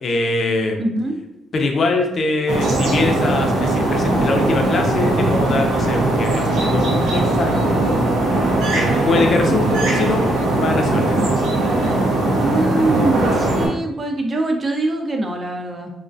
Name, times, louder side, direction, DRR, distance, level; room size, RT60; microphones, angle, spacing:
voice 1, 0.0-0.8 1.5-8.0 9.0-10.3 10.6-11.4, left 3 dB, 50° left, 3 dB, 0.4 m, -22 dB
voice 2, 0.8-1.1 12.4-15.9, right 2 dB, 35° right, 3 dB, 0.4 m, -22 dB
sound 1, 2.5-13.7, right 2 dB, 90° right, 0.6 m, -19 dB
2.3 x 2.2 x 2.5 m, 0.91 s
cardioid pair, 90°, 0 cm